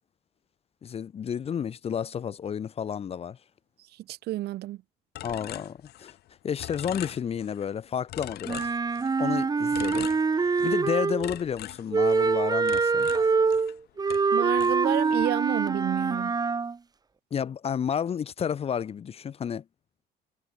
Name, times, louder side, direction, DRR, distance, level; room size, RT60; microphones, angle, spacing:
voice 1, 0.8-3.4 5.2-6.2 6.4-8.7 9.2-13.1 17.3-19.6, left 8 dB, 35° left, 0.7 m, -31 dB
voice 2, 3.9-4.8 14.3-16.4, right 15 dB, 70° right, 1.1 m, -30 dB
sound 1, 5.1-6.3 6.6-7.7 8.1-9.3 9.7-10.9 11.2-13.8 14.1-15.3, left 14 dB, 70° left, 2.1 m, -42 dB
Wind instrument woodwind instrument, 8.4-11.4 11.9-16.8, right 4 dB, 25° right, 1.3 m, -25 dB
cardioid pair, 110°, 17 cm